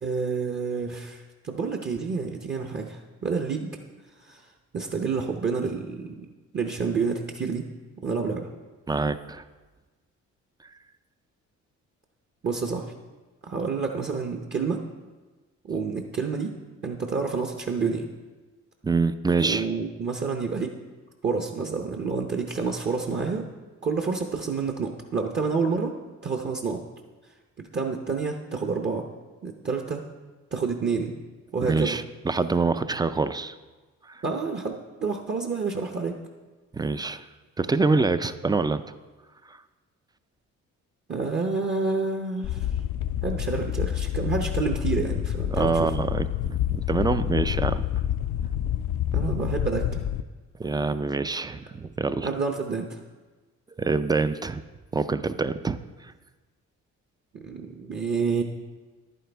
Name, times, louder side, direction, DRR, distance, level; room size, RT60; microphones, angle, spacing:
voice 1, 0.0-3.7 4.2-4.4 4.7-6.3 6.5-7.7 8.0-8.5 12.4-12.8 13.4-14.8 15.6-16.5 16.8-18.1 19.4-20.7 21.2-23.4 23.8-25.9 26.2-26.8 27.7-29.0 29.4-30.0 30.5-31.1 31.5-32.0 34.2-34.7 35.0-36.1 41.1-42.7 43.2-45.9 49.1-50.0 52.2-53.0 57.4-58.4, right 4 dB, 35° right, 3 dB, 0.8 m, -28 dB
voice 2, 8.9-9.4 18.8-19.7 31.7-33.5 34.1-34.2 36.7-37.2 37.6-38.8 39.5-39.6 45.5-47.8 50.6-52.3 53.8-54.6 54.9-55.8, right 3 dB, 15° right, 12 dB, 0.3 m, -25 dB
sound 1, 42.4-50.2, left 11 dB, 70° left, 0.4 m, -28 dB
11.0 x 9.3 x 3.4 m, 1.3 s
cardioid pair, 90°, 30 cm